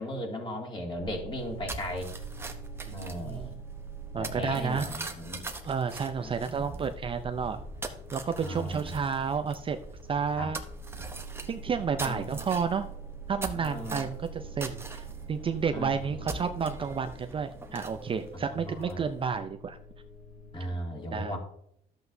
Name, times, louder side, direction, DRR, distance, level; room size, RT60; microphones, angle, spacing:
voice 1, 0.0-2.1 2.9-3.6 4.1-5.4 6.2-6.8 8.4-8.9 10.4-10.5 11.8-12.3 13.5-14.1 15.7-16.1 18.3-19.1 20.5-21.4, left 1 dB, 30° left, 0 dB, 2.5 m, -37 dB
sound 1, 1.0-20.7, right 4 dB, 55° left, 1.8 m, -45 dB
sound 2, 1.3-19.2, right 2 dB, 15° right, 0.9 m, -43 dB
voice 2, 2.9-3.5 4.1-4.9 5.6-7.6 8.1-9.8 10.1-10.6 11.5-12.9 13.3-19.8 21.1-21.4, right 6 dB, 30° right, 8 dB, 0.5 m, -31 dB
11.5 x 7.9 x 2.7 m, 0.70 s
cardioid pair, 110°, 17 cm